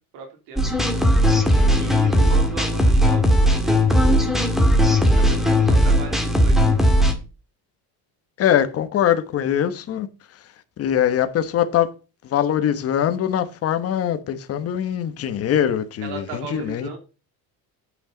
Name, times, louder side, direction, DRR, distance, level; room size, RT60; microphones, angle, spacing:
voice 1, 0.1-0.6 1.8-4.2 5.2-6.6 16.0-17.0, right 5 dB, 75° right, 3.1 m, -36 dB
sound 1, 0.6-7.1, equal, ahead, 1.7 m, -17 dB
voice 2, 8.4-10.1 10.8-11.9 12.3-17.0, left 10 dB, 35° left, 1.2 m, -22 dB
8.8 x 8.4 x 3.9 m
cardioid pair, 170°, 40 cm